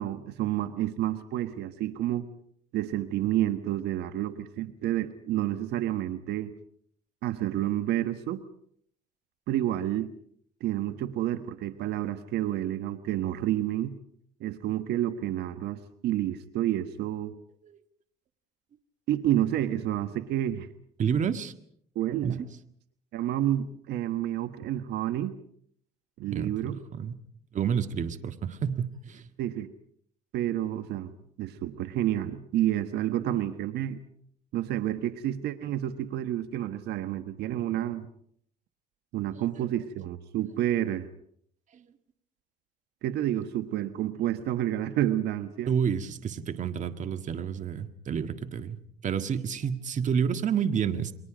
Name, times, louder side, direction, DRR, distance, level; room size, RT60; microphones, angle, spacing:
voice 1, 0.0-2.3 2.7-6.5 7.2-8.4 9.5-10.1 10.6-13.9 14.4-17.3 19.1-20.7 21.9-22.4 23.1-25.4 26.2-26.8 29.4-29.7 30.3-31.1 31.4-34.0 34.5-38.1 39.1-41.1 43.0-45.8, right 12 dB, 75° right, 10 dB, 1.3 m, -29 dB
voice 2, 21.0-21.5 22.2-22.5 26.3-27.1 27.5-29.3 41.7-41.8 45.7-51.1, right 7 dB, 45° right, 9 dB, 1.8 m, -29 dB
29.5 x 23.5 x 5.1 m, 0.65 s
cardioid pair, 110°, 17 cm